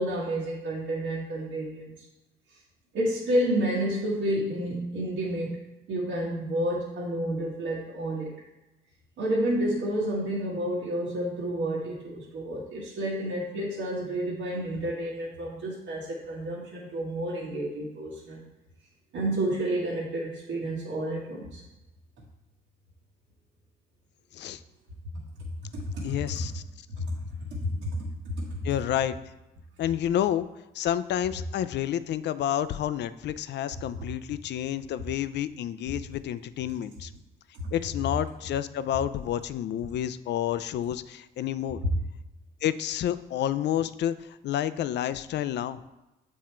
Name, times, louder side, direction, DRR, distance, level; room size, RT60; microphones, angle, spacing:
voice 1, 0.0-2.0 2.9-5.6 5.9-8.3 9.2-18.4 19.1-21.6 25.4-25.5 25.7-26.1 26.4-26.5 27.0-27.1 27.5-28.6 37.5-37.7, right 1 dB, 75° right, -6 dB, 1.3 m, -30 dB
voice 2, 26.0-26.6 28.6-29.2 29.8-30.5 30.7-37.1 37.7-41.8 42.6-45.8, left 11 dB, 60° left, 14 dB, 0.4 m, -29 dB
7.5 x 3.7 x 4.4 m, 1.0 s
cardioid pair, 90°, 20 cm